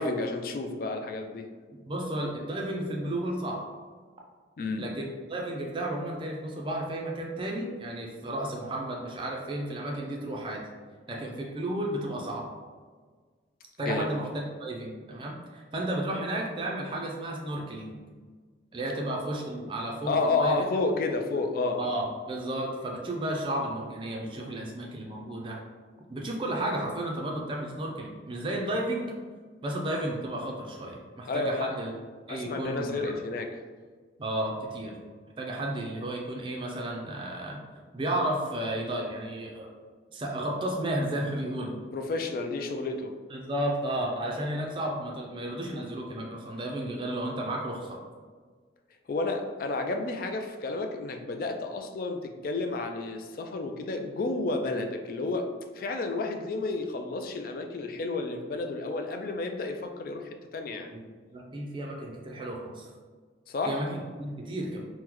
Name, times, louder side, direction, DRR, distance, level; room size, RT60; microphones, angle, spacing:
voice 1, 0.0-1.5 4.6-4.9 13.8-14.1 20.1-21.8 31.3-31.7 32.3-33.6 41.9-43.1 49.1-55.5 55.7-60.9 63.5-63.8, left 3 dB, 50° left, 4 dB, 0.3 m, -31 dB
voice 2, 1.7-3.6 4.8-10.6 11.1-12.5 13.8-18.0 18.7-20.6 21.8-25.6 26.1-29.0 29.6-31.9 32.3-33.1 34.2-34.9 35.4-37.6 37.9-39.7 40.1-41.8 43.3-48.0 60.9-61.0 61.3-62.9 63.7-64.8, right 1 dB, 25° right, -1 dB, 0.4 m, -33 dB
3.7 x 2.1 x 2.9 m, 1.5 s
head